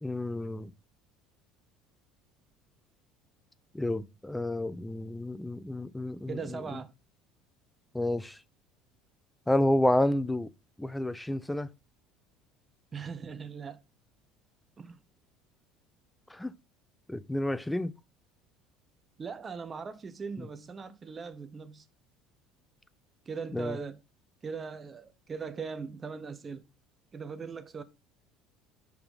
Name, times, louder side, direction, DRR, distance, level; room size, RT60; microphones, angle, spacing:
voice 1, 0.0-0.7 3.7-6.6 7.9-8.4 9.5-10.5 10.8-11.7 16.3-16.5 17.1-17.9 20.4-20.5 23.5-23.8, left 1 dB, 5° left, 0.5 m, -30 dB
voice 2, 6.3-6.9 12.9-13.8 14.8-15.0 19.2-21.9 23.3-24.0 24.4-26.7 27.1-27.8, right 5 dB, 25° right, 0.7 m, -39 dB
5.5 x 4.4 x 4.1 m
figure-of-eight pair, 60°, 0 cm